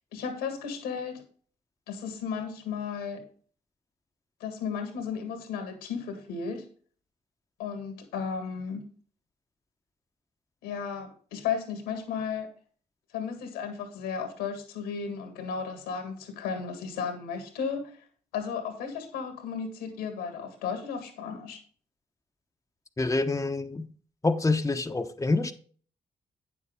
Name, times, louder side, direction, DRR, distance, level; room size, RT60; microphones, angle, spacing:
voice 1, 0.1-1.2 1.9-3.2 4.4-6.6 7.6-8.8 10.6-12.5 13.1-18.0 18.3-21.6, left 6 dB, 85° left, 1.8 m, -34 dB
voice 2, 23.0-23.9 24.2-25.5, left 3 dB, 20° left, 1.0 m, -26 dB
9.2 x 7.1 x 3.7 m
hypercardioid pair, 40°, 16 cm